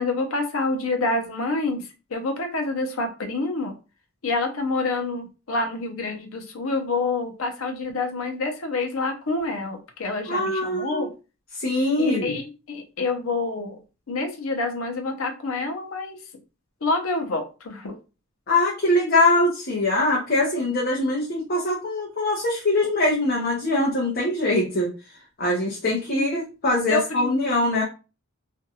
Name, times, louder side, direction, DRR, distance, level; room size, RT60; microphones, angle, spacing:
voice 1, 0.0-1.8 2.1-3.7 4.2-11.1 12.0-13.8 14.1-16.2 16.8-17.9 26.1-26.3 26.9-27.4, left 3 dB, 85° left, 4 dB, 0.7 m, -27 dB
voice 2, 10.3-11.1 11.6-12.4 18.5-24.9 25.4-27.8, left 2 dB, 50° left, -3 dB, 0.7 m, -22 dB
2.5 x 2.3 x 2.7 m, 0.31 s
head